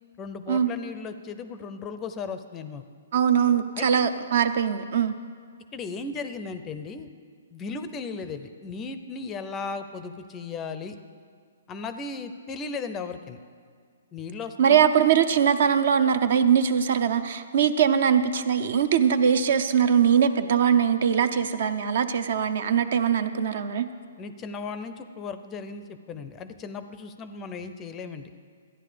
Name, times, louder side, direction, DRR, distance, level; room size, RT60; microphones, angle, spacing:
voice 1, 0.2-2.8 3.8-3.9 5.7-7.1 7.5-11.0 11.7-13.4 14.1-14.8 24.2-28.3, left 4 dB, 15° left, 10 dB, 0.5 m, -36 dB
voice 2, 3.1-5.1 14.6-23.9, right 8 dB, 55° right, 11 dB, 0.6 m, -22 dB
13.5 x 10.0 x 5.0 m, 2.1 s
hypercardioid pair, 160°, 0 cm